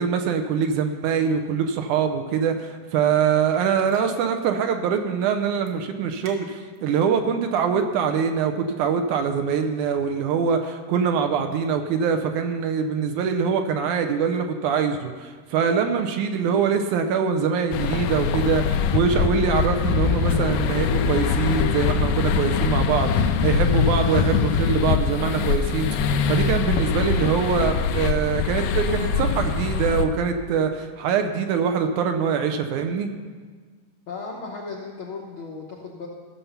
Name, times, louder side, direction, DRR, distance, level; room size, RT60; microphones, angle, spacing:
voice 1, 0.0-33.1, right 6 dB, 75° right, 6 dB, 2.0 m, -23 dB
sound 1, 3.5-4.2 4.4-4.5 5.5-5.7 6.2-6.8 7.3-7.8, right 4 dB, 60° right, 2.6 m, -45 dB
sound 2, 17.7-30.1, left 6 dB, 85° left, 2.3 m, -23 dB
voice 2, 34.1-36.1, left 4 dB, 70° left, -2 dB, 1.2 m, -35 dB
15.5 x 6.9 x 5.6 m, 1.5 s
omnidirectional pair, 3.9 m